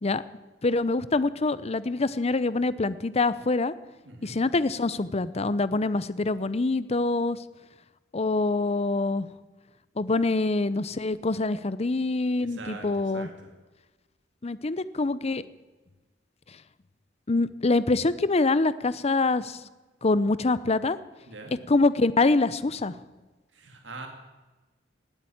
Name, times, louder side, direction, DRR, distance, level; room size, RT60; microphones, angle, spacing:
voice 1, 0.6-3.7 4.2-7.4 8.1-9.3 10.0-13.3 14.4-15.4 17.3-19.6 20.0-21.0 21.7-22.9, left 3 dB, 35° left, 16 dB, 0.7 m, -25 dB
voice 2, 4.0-4.4 12.4-13.6 21.3-21.6 23.5-24.1, right 3 dB, 80° right, 4 dB, 2.4 m, -43 dB
18.5 x 8.9 x 8.7 m, 1.2 s
head